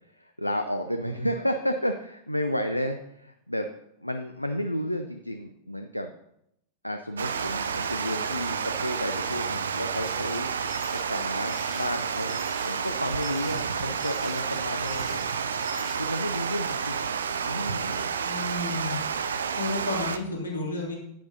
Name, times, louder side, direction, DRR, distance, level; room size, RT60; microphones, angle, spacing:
voice 1, 0.1-3.7 4.0-6.1 6.8-10.5 10.9-15.2 16.0-17.0 17.4-18.1, equal, 90° left, 7 dB, 0.4 m, -32 dB
Water, 7.2-20.2, right 6 dB, 70° right, 0.5 m, -30 dB
sound 1, 10.0-16.0, right 3 dB, 20° right, 3.3 m, -46 dB
voice 2, 18.2-18.9 19.5-21.0, left 2 dB, 70° left, -2 dB, 2.7 m, -31 dB
9.1 x 8.9 x 2.8 m, 0.78 s
figure-of-eight pair, 90°, 0 cm